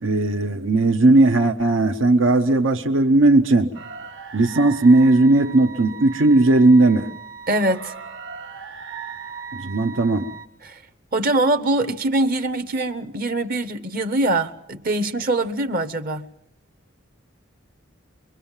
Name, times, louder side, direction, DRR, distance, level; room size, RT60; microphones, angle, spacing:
voice 1, 0.0-3.7 4.3-7.1 9.5-10.3, right 2 dB, 80° right, 5 dB, 1.0 m, -17 dB
sound 1, 3.7-10.5, right 6 dB, 65° right, 1.6 m, -38 dB
voice 2, 7.5-7.9 10.6-10.8 11.1-16.3, right 2 dB, 50° right, 9 dB, 0.9 m, -23 dB
24.5 x 24.0 x 7.3 m, 0.77 s
head